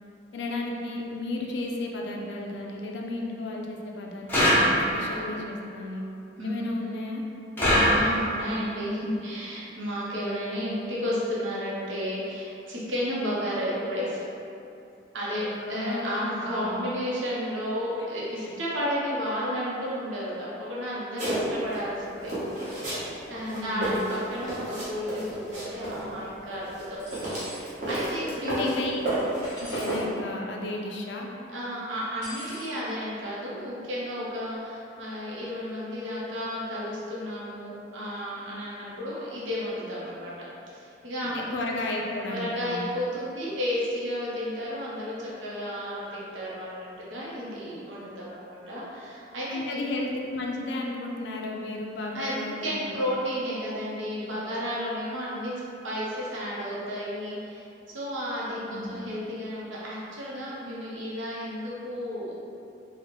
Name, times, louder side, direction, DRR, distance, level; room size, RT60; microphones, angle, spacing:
voice 1, 0.3-6.0 6.4-7.2 15.5-16.1 16.6-16.8 18.4-18.6 23.5-24.2 28.4-29.0 29.5-31.3 41.2-42.9 49.5-53.2 58.5-59.2, left 2 dB, 65° left, 0 dB, 0.3 m, -33 dB
sound 1, 4.3-5.2 7.6-8.5, equal, 10° left, 0.5 m, -22 dB
voice 2, 7.7-14.3 15.1-22.3 23.3-27.0 27.5-28.7 31.5-40.3 40.7-41.5 42.3-49.8 52.1-52.3 52.6-55.5 55.8-62.3, equal, 75° right, -7 dB, 0.7 m, -32 dB
sound 2, 21.2-21.8 22.2-23.1 23.4-26.0 26.7-28.8 29.0-30.0, right 1 dB, 40° right, 0.9 m, -31 dB
sound 3, 27.0-27.7 29.4-30.0 32.2-32.7, equal, 55° right, 1.4 m, -43 dB
4.0 x 2.1 x 2.9 m, 2.7 s
head